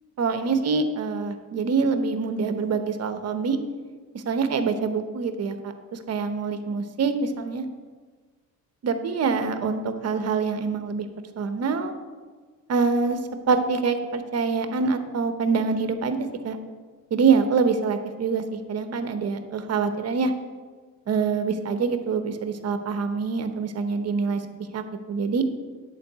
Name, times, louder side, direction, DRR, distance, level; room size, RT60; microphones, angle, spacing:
voice 1, 0.2-3.6 4.3-7.7 8.8-11.1 11.4-11.9 12.7-13.2 13.5-16.2 16.4-16.6 17.1-20.3 21.1-24.4 24.7-25.5, right 5 dB, 50° right, 8 dB, 0.9 m, -25 dB
10.0 x 4.7 x 8.0 m, 1.4 s
cardioid pair, 125°, 33 cm